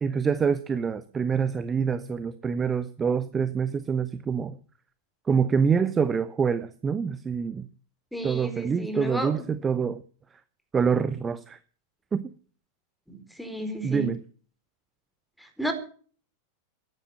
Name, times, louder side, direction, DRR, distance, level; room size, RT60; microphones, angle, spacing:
voice 1, 0.0-4.6 5.3-7.7 8.2-10.0 10.7-11.6 12.1-12.3 13.8-14.2, right 6 dB, 20° right, 14 dB, 0.8 m, -26 dB
voice 2, 8.1-9.3 13.1-14.1 15.4-15.7, right 1 dB, ahead, 8 dB, 4.5 m, -32 dB
15.0 x 11.0 x 7.5 m, 0.43 s
figure-of-eight pair, 90°, 0 cm